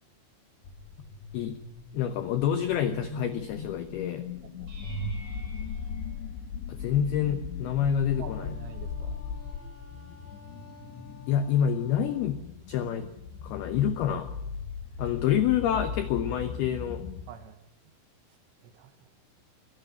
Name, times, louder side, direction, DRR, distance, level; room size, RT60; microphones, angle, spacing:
sound 1, 0.6-17.2, left 6 dB, 60° left, 3.7 m, -39 dB
voice 1, 1.9-4.2 6.7-8.5 11.3-13.1 13.4-14.4 15.0-17.0, left 9 dB, 80° left, 9 dB, 2.2 m, -27 dB
voice 2, 4.4-5.0 5.6-5.7 8.2-9.2 14.8-15.0 17.3-17.7 18.6-19.1, right 8 dB, 70° right, 10 dB, 3.0 m, -48 dB
sound 2, 4.7-7.0 7.6-8.1 8.5-8.6 13.0-13.1, right 6 dB, 35° right, 8.3 m, -41 dB
Wind instrument woodwind instrument, 8.1-12.3, left 5 dB, 45° left, 1.1 m, -53 dB
26.0 x 16.0 x 8.4 m, 0.86 s
omnidirectional pair, 6.0 m